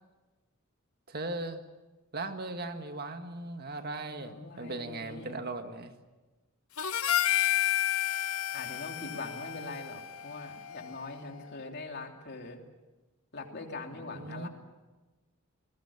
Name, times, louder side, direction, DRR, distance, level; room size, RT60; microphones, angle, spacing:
voice 1, 1.1-1.6 2.1-5.9 14.0-14.5, right 2 dB, 45° right, 6 dB, 1.8 m, -38 dB
voice 2, 4.2-5.4 8.5-12.6 13.3-14.5, left 3 dB, 50° left, 3 dB, 3.1 m, -42 dB
Harmonica, 6.8-11.3, left 12 dB, 90° left, 1.0 m, -31 dB
28.5 x 21.0 x 7.2 m, 1.2 s
head